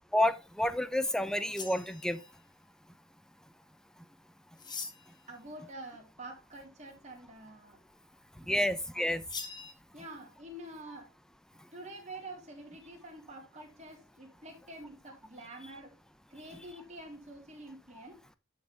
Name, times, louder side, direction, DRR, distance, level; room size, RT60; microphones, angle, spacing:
voice 1, 0.1-2.2 8.5-9.2, left 1 dB, 5° left, 0.6 m, -29 dB
sound 1, 1.4-2.4 4.6-5.2 9.3-9.7, left 5 dB, 20° left, 1.3 m, -42 dB
voice 2, 5.3-7.8 8.4-8.7 8.9-9.1 9.9-11.1 11.7-16.0 16.3-18.2, right 1 dB, 35° right, 3.5 m, -47 dB
11.0 x 6.4 x 3.4 m
head